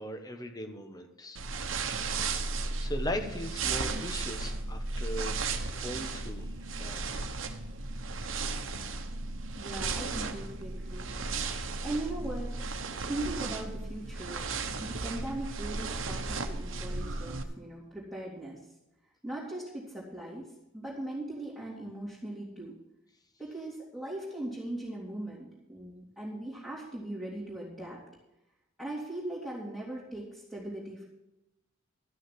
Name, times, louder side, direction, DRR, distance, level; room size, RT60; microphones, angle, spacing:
voice 1, 0.0-1.4 1.9-2.3 2.8-5.4 5.8-6.5 6.8-7.2, equal, 20° left, 6 dB, 1.2 m, -39 dB
sound 1, 1.3-17.4, right 3 dB, 70° right, 1.1 m, -35 dB
voice 2, 9.6-11.1 11.8-12.5 13.1-18.7 19.2-22.7 23.4-28.0 28.8-31.0, right 1 dB, ahead, -8 dB, 2.8 m, -39 dB
13.5 x 6.2 x 7.6 m, 0.92 s
head